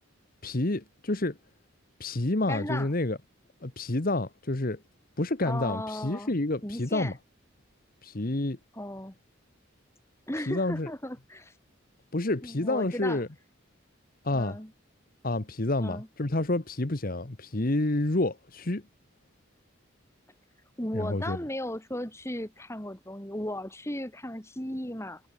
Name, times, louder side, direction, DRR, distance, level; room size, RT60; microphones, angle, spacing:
voice 1, 0.4-1.4 2.0-3.2 3.6-4.8 5.2-7.1 8.0-8.6 10.5-10.9 12.1-13.3 14.2-14.6 15.2-18.8 20.9-21.4, left 2 dB, 45° left, 1.3 m, -29 dB
voice 2, 2.5-2.9 5.4-6.3 6.6-7.1 8.7-9.1 10.3-11.5 12.4-13.2 14.3-14.7 15.8-16.1 20.8-25.2, left 1 dB, 15° left, 3.0 m, -36 dB
head